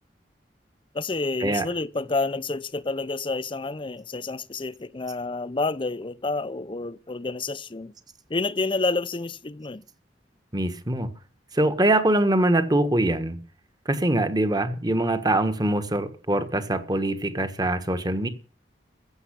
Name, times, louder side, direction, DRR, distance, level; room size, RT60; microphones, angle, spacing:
voice 1, 0.9-7.9 8.3-9.8, left 3 dB, 30° left, 0.6 m, -29 dB
voice 2, 10.5-11.1 11.5-13.4 13.8-18.3, right 1 dB, 25° right, 1.4 m, -23 dB
15.0 x 7.1 x 10.0 m
head